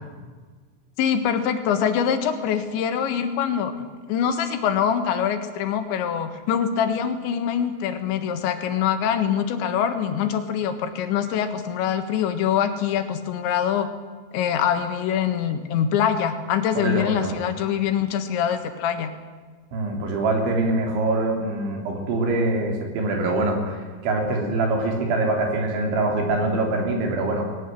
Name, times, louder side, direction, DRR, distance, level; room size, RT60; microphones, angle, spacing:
voice 1, 1.0-13.9 14.3-19.1, left 8 dB, 85° left, 8 dB, 3.9 m, -24 dB
voice 2, 16.8-17.3 19.7-27.5, right 2 dB, 85° right, 2 dB, 5.8 m, -24 dB
20.5 x 17.5 x 9.3 m, 1.5 s
omnidirectional pair, 5.2 m